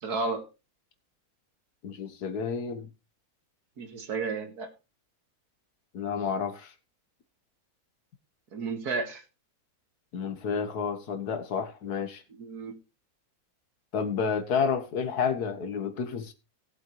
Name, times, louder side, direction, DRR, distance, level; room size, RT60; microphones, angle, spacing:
voice 1, 0.0-0.4 3.8-4.7 8.5-9.2 12.4-12.7, right 4 dB, 80° right, 2.4 m, -32 dB
voice 2, 1.8-2.9 5.9-6.7 10.1-12.2 13.9-16.3, left 6 dB, 80° left, 1.9 m, -30 dB
18.0 x 7.9 x 3.1 m
omnidirectional pair, 1.6 m